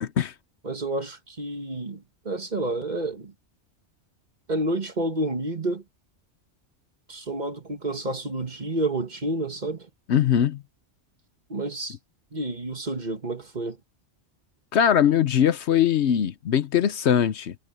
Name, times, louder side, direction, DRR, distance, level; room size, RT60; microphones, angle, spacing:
voice 1, 0.0-0.3 10.1-10.6 14.7-17.5, left 9 dB, 70° left, 1.0 m, -21 dB
voice 2, 0.6-3.3 4.5-5.8 7.1-9.9 11.5-12.0 12.3-13.8, right 2 dB, 40° right, 1.7 m, -29 dB
omnidirectional pair, 1.2 m